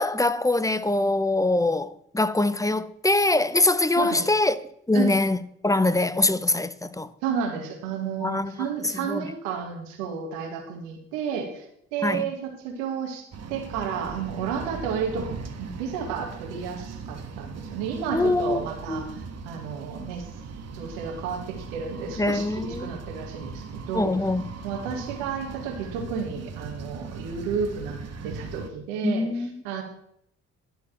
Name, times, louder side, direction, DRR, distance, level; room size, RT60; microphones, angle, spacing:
voice 1, 0.0-4.6 4.9-7.1 8.2-8.5 9.0-9.3 12.0-12.2 18.1-18.6 18.9-19.2 22.2-22.9 23.9-24.5 29.0-29.5, left 2 dB, 10° left, 0.8 m, -23 dB
voice 2, 4.0-4.3 4.9-5.1 7.2-11.6 11.9-13.2 13.5-15.3 15.5-20.3 20.7-24.1 24.6-28.0 28.2-29.8, right 7 dB, 85° right, 2.0 m, -32 dB
sound 1, 13.3-28.7, right 5 dB, 50° right, 1.5 m, -39 dB
12.0 x 4.6 x 7.3 m
hypercardioid pair, 50°, 33 cm